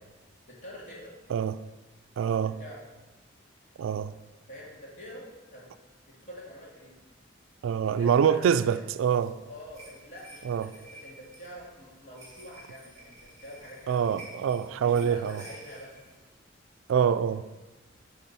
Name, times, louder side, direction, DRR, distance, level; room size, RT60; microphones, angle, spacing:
voice 1, 0.5-1.1 2.4-2.8 4.5-5.3 5.5-5.7 6.1-7.0 7.9-8.8 9.5-14.4 14.8-15.9, equal, 40° left, -4 dB, 2.0 m, -46 dB
voice 2, 2.2-2.5 3.8-4.1 7.6-9.3 10.4-10.7 13.9-15.4 16.9-17.4, right 7 dB, 90° right, 13 dB, 0.3 m, -25 dB
sound 1, 8.9-16.3, right 1 dB, 20° right, 2.0 m, -52 dB
8.6 x 3.5 x 5.5 m, 1.2 s
head